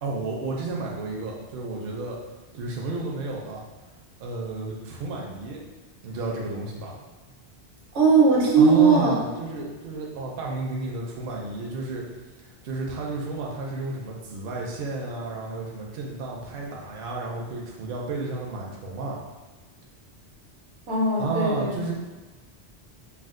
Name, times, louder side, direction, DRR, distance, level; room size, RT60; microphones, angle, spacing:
voice 1, 0.0-2.2 2.5-3.6 4.2-5.6 6.0-6.9 8.6-12.0 12.4-19.2 21.2-21.9, right 3 dB, 65° right, -2 dB, 0.7 m, -31 dB
voice 2, 7.9-9.1 20.9-21.7, right 4 dB, 80° right, -3 dB, 1.0 m, -18 dB
2.5 x 2.3 x 3.5 m, 1.3 s
omnidirectional pair, 1.1 m